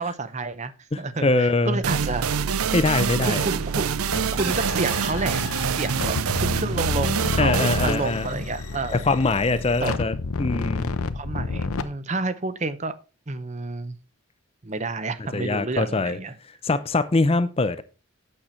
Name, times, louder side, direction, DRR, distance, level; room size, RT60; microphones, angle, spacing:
voice 1, 0.0-0.7 1.0-2.3 3.2-3.9 4.3-5.4 5.7-9.0 9.8-10.0 11.1-12.9 13.3-14.0 14.6-16.3, right 3 dB, 30° right, 0.6 m, -29 dB
voice 2, 0.9-1.8 2.7-3.5 7.4-8.4 8.9-10.9 15.3-16.2 16.6-17.8, left 3 dB, 25° left, 0.5 m, -23 dB
sound 1, 1.8-9.3, right 7 dB, 80° right, 0.5 m, -26 dB
sound 2, 4.1-11.8, left 3 dB, 80° left, 0.7 m, -30 dB
8.7 x 6.6 x 4.3 m
head